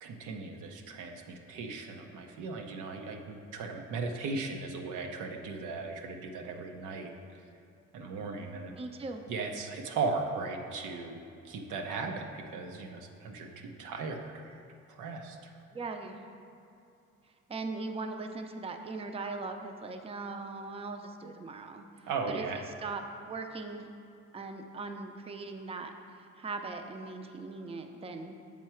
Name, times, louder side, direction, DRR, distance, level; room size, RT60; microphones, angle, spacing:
voice 1, 0.0-7.1 7.9-8.7 9.3-11.2 11.4-14.6 14.9-15.4 22.1-22.6, right 4 dB, 85° right, 3 dB, 0.7 m, -37 dB
voice 2, 8.8-9.2 15.7-16.2 17.5-21.8 22.3-23.9 24.3-25.9 26.2-28.4, right 3 dB, 20° right, 5 dB, 0.5 m, -39 dB
7.3 x 4.6 x 4.4 m, 2.6 s
cardioid pair, 90°, 30 cm